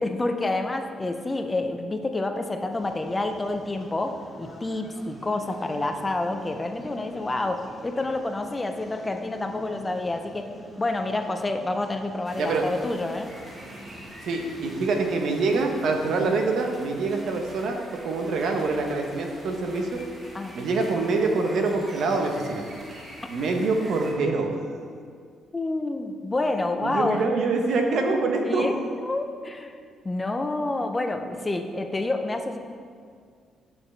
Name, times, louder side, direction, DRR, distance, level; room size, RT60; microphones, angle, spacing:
voice 1, 0.0-10.5 10.8-13.3 16.2-16.3 20.3-20.6 25.5-27.2 28.5-29.7 30.0-32.6, left 2 dB, 20° left, 6 dB, 0.5 m, -28 dB
sound 1, 2.7-16.1, equal, ahead, 1.7 m, -46 dB
sound 2, 12.2-24.1, equal, 30° right, 1.6 m, -46 dB
voice 2, 14.2-17.8 18.0-20.0 20.5-22.6 23.3-24.8 26.8-28.8, right 3 dB, 70° right, 3 dB, 0.9 m, -25 dB
8.4 x 5.9 x 3.3 m, 2.1 s
cardioid pair, 90°, 0 cm